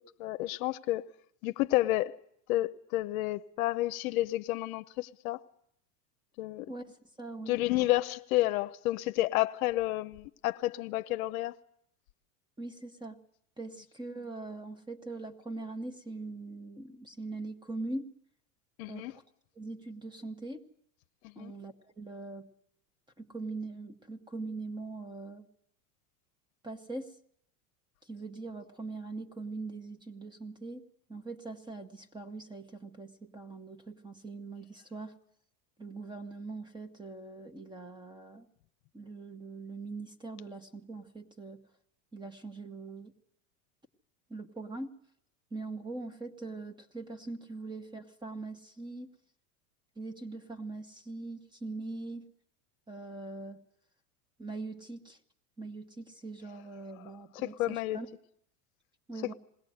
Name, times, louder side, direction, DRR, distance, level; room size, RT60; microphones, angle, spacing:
voice 1, 0.2-1.0 1.4-2.2 2.5-5.5 6.4-6.7 7.5-11.6 18.8-19.2 21.2-21.5 57.3-58.0, left 16 dB, 65° left, 0.8 m, -30 dB
voice 2, 6.7-7.6 12.6-13.2 13.6-18.1 18.9-19.2 19.6-20.6 21.4-22.5 23.2-25.5 26.6-27.1 28.1-30.8 31.1-35.1 35.8-38.5 38.9-41.6 42.1-43.1 44.3-45.0 45.5-49.1 50.0-52.3 52.9-53.6 54.4-55.2 55.6-58.1 59.1-59.3, right 3 dB, 10° right, 1.2 m, -42 dB
21.0 x 17.0 x 7.8 m
supercardioid pair, 125°, 45 cm